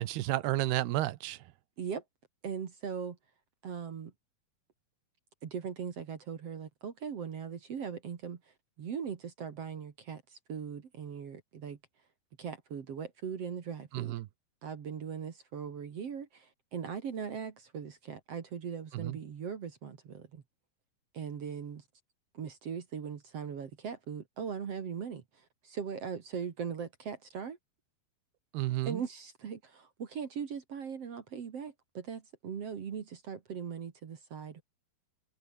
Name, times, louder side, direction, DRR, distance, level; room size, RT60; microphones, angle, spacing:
voice 1, 0.0-1.4 13.9-14.3 18.9-19.2 28.5-29.0, right 16 dB, 90° right, 3.1 m, -31 dB
voice 2, 2.4-3.2 3.6-4.1 5.4-8.4 8.8-11.8 12.4-14.1 14.6-20.4 21.1-21.8 22.3-27.6 28.9-34.6, right 7 dB, 45° right, 2.4 m, -40 dB
omnidirectional pair, 4.5 m